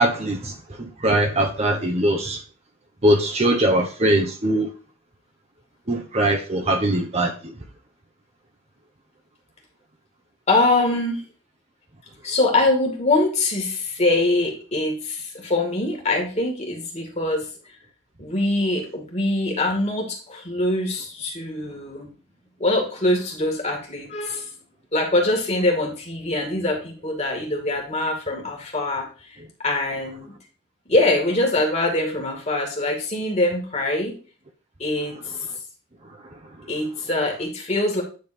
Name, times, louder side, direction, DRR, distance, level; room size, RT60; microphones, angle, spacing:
voice 1, 0.0-2.4 3.0-4.7 5.9-7.5 36.6-36.7, right 1 dB, 30° right, 1.0 m, -21 dB
voice 2, 10.5-11.2 12.2-17.5 18.2-22.1 22.6-24.5 24.9-29.1 29.6-30.3 30.9-34.1 34.8-35.2 36.7-38.0, left 2 dB, 30° left, 2.4 m, -23 dB
9.5 x 3.9 x 5.2 m
head